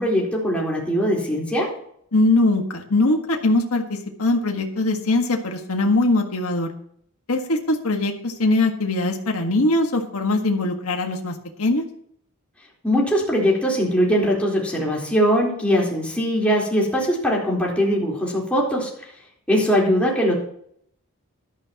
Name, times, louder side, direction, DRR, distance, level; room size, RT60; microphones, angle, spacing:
voice 1, 0.0-1.7 12.8-18.9 19.5-20.3, equal, 5° left, -4 dB, 4.0 m, -21 dB
voice 2, 2.1-6.7 7.3-11.8, left 2 dB, 75° left, 2 dB, 1.6 m, -21 dB
16.0 x 12.0 x 3.0 m, 0.67 s
head